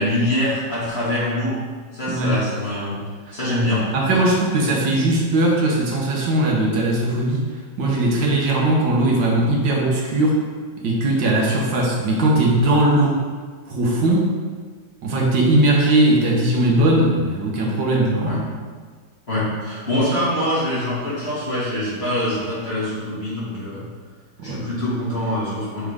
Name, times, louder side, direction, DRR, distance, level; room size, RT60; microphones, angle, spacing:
voice 1, 0.0-1.6 1.9-3.0 3.3-4.2 18.2-18.4 19.3-23.8 24.4-25.9, left 1 dB, 35° left, -8 dB, 2.0 m, -24 dB
voice 2, 2.1-2.4 3.3-3.4 3.9-7.4 7.8-10.4 10.8-13.3 13.7-14.3 15.0-18.4 24.4-24.7, right 1 dB, 75° right, -2 dB, 1.7 m, -19 dB
6.7 x 3.6 x 4.8 m, 1.5 s
omnidirectional pair, 2.0 m